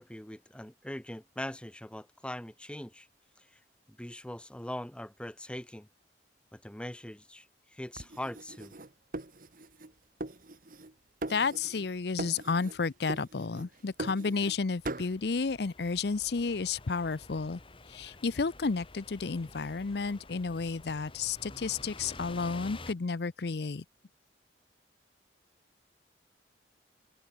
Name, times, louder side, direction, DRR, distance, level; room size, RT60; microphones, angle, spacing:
voice 1, 0.0-3.1 4.0-5.9 6.5-7.5 7.7-8.7, left 1 dB, 5° left, 0.7 m, -41 dB
sound 1, 8.0-9.9 10.2-10.9 11.2-11.9 12.2-12.8 13.1-14.6 14.8-15.1, right 2 dB, 50° right, 2.0 m, -40 dB
voice 2, 11.3-17.6 17.9-23.8, left 4 dB, 65° left, 0.6 m, -32 dB
sound 2, 14.5-22.9, left 2 dB, 30° left, 2.2 m, -50 dB
head